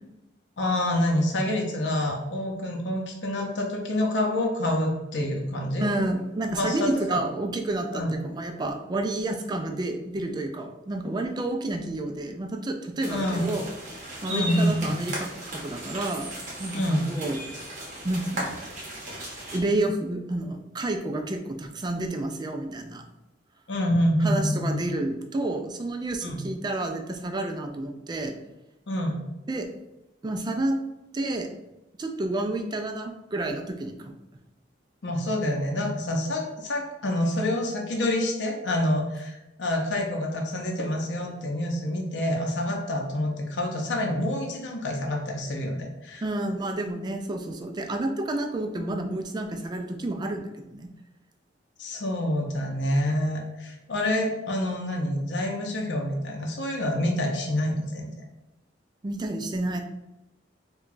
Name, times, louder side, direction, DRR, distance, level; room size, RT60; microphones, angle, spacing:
voice 1, 0.6-5.9 6.6-7.2 7.9-8.1 13.1-13.5 14.3-15.0 16.7-17.1 23.7-24.8 26.2-26.4 28.9-29.3 35.0-46.2 51.8-58.1, left 1 dB, 75° left, 0 dB, 0.6 m, -27 dB
voice 2, 5.8-13.6 14.2-16.3 16.6-17.7 18.0-18.5 19.5-23.0 24.2-28.3 29.5-29.7 30.2-30.8 31.1-31.5 32.0-34.1 46.2-50.9 59.0-59.8, right 2 dB, 25° right, 5 dB, 0.3 m, -30 dB
sound 1, 13.0-19.6, right 1 dB, 45° right, 0.9 m, -36 dB
4.7 x 2.2 x 2.5 m, 0.96 s
head